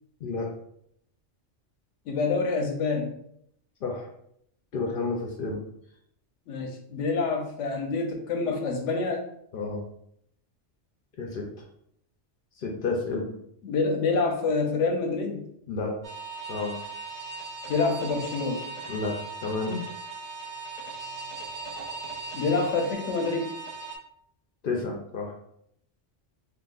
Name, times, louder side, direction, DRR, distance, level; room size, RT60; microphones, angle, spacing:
voice 1, 2.1-3.1 6.5-9.2 13.6-15.5 17.7-18.6 22.3-23.5, left 4 dB, 85° left, 3 dB, 0.9 m, -27 dB
voice 2, 4.7-5.6 9.5-9.8 11.2-11.5 12.6-13.4 15.7-15.9 16.5-16.8 18.9-19.1 19.4-19.8 24.6-25.3, left 3 dB, 60° left, 0 dB, 0.6 m, -30 dB
sound 1, 16.0-24.0, right 3 dB, 65° right, 0.4 m, -38 dB
3.7 x 2.4 x 2.3 m, 0.72 s
omnidirectional pair, 1.2 m